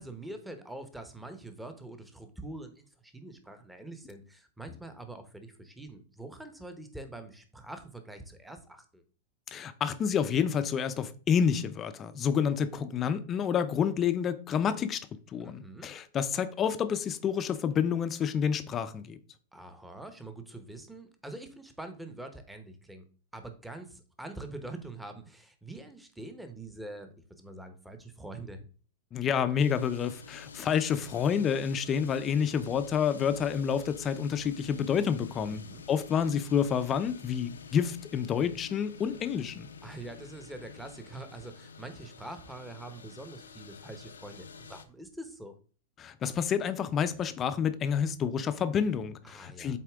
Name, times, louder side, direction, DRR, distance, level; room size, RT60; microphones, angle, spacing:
voice 1, 0.0-9.0 15.4-15.9 19.5-23.0 23.3-28.7 35.3-35.8 39.8-45.6 49.2-49.8, right 2 dB, 5° right, 1.1 m, -45 dB
voice 2, 9.5-15.1 15.3-19.2 29.1-35.6 35.9-39.7 46.0-49.8, left 7 dB, 30° left, 0.6 m, -29 dB
sound 1, 29.6-44.9, left 6 dB, 90° left, 0.7 m, -49 dB
7.3 x 4.2 x 3.6 m
hypercardioid pair, 110°, 0 cm